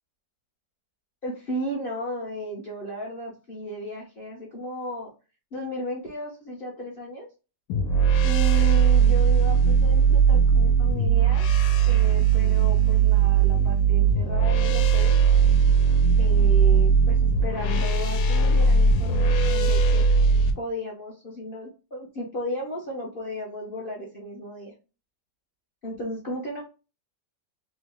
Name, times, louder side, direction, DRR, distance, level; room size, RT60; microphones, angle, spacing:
voice 1, 1.2-5.1 5.5-7.3 8.2-11.5 11.9-15.2 16.2-20.1 20.6-24.7 25.8-26.6, equal, 50° left, -3 dB, 0.6 m, -34 dB
sound 1, 7.7-20.5, right 6 dB, 80° left, 1.2 m, -19 dB
3.2 x 2.0 x 3.4 m, 0.31 s
omnidirectional pair, 1.9 m